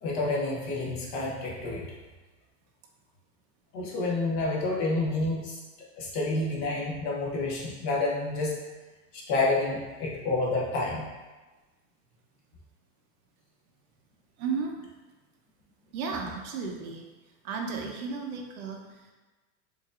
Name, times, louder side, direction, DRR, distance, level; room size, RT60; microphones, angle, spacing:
voice 1, 0.0-1.9 3.7-5.6 6.0-8.6 9.1-11.1, left 2 dB, 40° left, -4 dB, 1.0 m, -29 dB
voice 2, 14.4-14.7 15.9-17.1 17.4-19.1, right 5 dB, 65° right, 1 dB, 0.8 m, -34 dB
4.7 x 2.7 x 2.4 m, 1.2 s
supercardioid pair, 145°, 46 cm